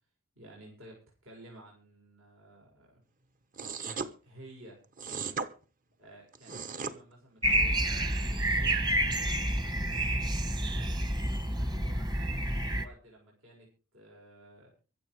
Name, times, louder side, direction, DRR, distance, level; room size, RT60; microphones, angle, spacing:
voice 1, 0.4-3.0 3.8-5.4 6.0-9.8 10.7-14.7, right 1 dB, 70° right, -2 dB, 6.9 m, -54 dB
sound 1, 3.6-4.1 5.0-5.5 6.3-7.0, right 5 dB, 40° right, 1.2 m, -36 dB
sound 2, 7.4-12.8, right 1 dB, 20° right, 1.3 m, -29 dB
24.0 x 8.1 x 4.8 m, 0.36 s
head